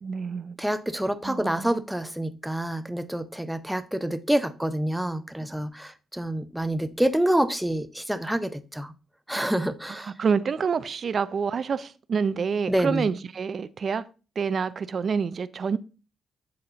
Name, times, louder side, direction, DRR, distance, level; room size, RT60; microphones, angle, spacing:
voice 1, 0.0-0.6 1.2-1.8 10.0-14.1 14.4-15.8, right 6 dB, 50° right, 0.4 m, -27 dB
voice 2, 0.6-8.9 9.3-10.1 12.7-13.1, right 1 dB, 5° right, 0.6 m, -27 dB
7.8 x 4.2 x 3.9 m
cardioid pair, 90°, 0 cm